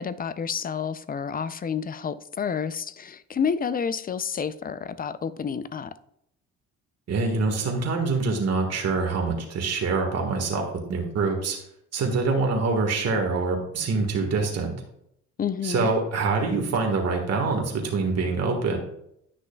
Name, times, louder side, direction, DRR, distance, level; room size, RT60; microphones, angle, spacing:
voice 1, 0.0-6.0 15.4-15.9, left 6 dB, 30° left, 0.4 m, -29 dB
voice 2, 7.1-11.6 11.9-14.7 15.6-18.8, right 4 dB, 55° right, 1.6 m, -25 dB
10.5 x 6.1 x 2.3 m
cardioid pair, 90°, 30 cm